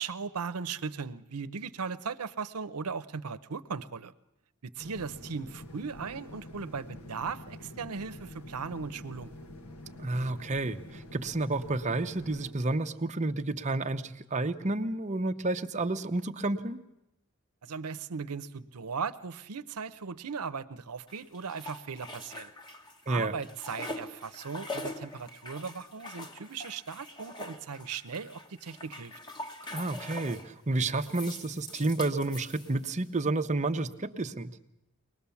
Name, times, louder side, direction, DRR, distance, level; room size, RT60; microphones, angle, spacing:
voice 1, 0.0-4.1 4.6-9.3 17.6-22.5 23.1-29.1, right 5 dB, 85° right, 12 dB, 0.7 m, -38 dB
sound 1, 4.8-12.5, left 1 dB, 75° left, 1.5 m, -47 dB
voice 2, 10.0-16.8 23.1-23.3 29.7-34.5, right 2 dB, 30° right, 7 dB, 0.8 m, -30 dB
sound 2, 21.1-23.0 23.3-30.5 31.0-33.0, left 2 dB, 20° left, 1.2 m, -43 dB
23.0 x 19.5 x 7.1 m, 0.89 s
head